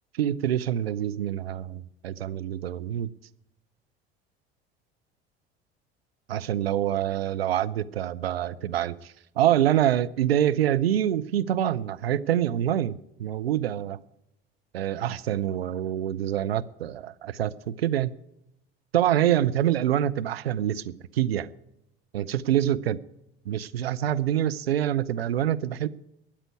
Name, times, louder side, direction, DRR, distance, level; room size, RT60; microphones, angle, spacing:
voice 1, 0.1-3.1 6.3-14.0 14.7-18.1 18.9-21.5 22.1-23.0 23.5-25.9, right 11 dB, 80° right, 14 dB, 0.6 m, -26 dB
13.0 x 8.9 x 9.5 m, 0.83 s
figure-of-eight pair, 65°, 30 cm